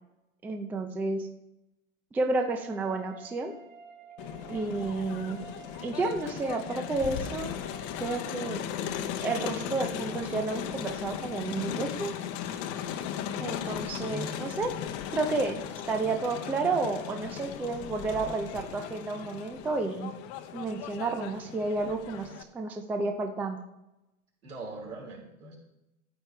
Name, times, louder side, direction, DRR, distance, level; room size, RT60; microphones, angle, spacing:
voice 1, 0.4-1.3 2.1-3.6 4.5-5.4 5.8-7.6 8.0-8.6 9.2-12.1 13.4-14.7 15.1-20.1 20.5-23.6, right 3 dB, 5° right, 5 dB, 0.4 m, -31 dB
sound 1, 2.4-8.4, right 2 dB, 25° right, 1.9 m, -49 dB
Crowd, 4.2-22.4, left 9 dB, 35° left, 0.9 m, -37 dB
voice 2, 13.8-14.4 24.4-25.6, equal, 80° right, -2 dB, 4.5 m, -41 dB
14.0 x 8.7 x 3.3 m, 0.91 s
hypercardioid pair, 110°, 44 cm